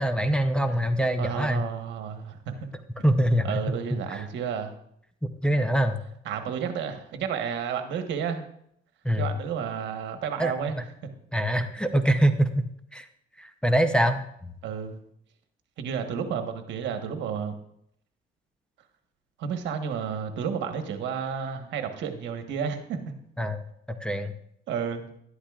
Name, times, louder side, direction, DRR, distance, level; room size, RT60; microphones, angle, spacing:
voice 1, 0.0-1.6 3.0-3.6 4.1-4.2 5.4-6.0 9.0-9.3 10.4-10.8 11.3-12.6 12.9-13.0 13.4-14.5 23.4-23.6 24.0-24.3, right 1 dB, 5° left, 6 dB, 0.6 m, -24 dB
voice 2, 1.2-2.5 3.4-4.7 6.2-8.4 9.1-10.8 14.6-15.0 15.8-17.6 19.4-23.0 24.7-25.1, right 7 dB, 75° right, 6 dB, 1.3 m, -31 dB
12.0 x 11.5 x 2.4 m, 0.71 s
cardioid pair, 110°, 19 cm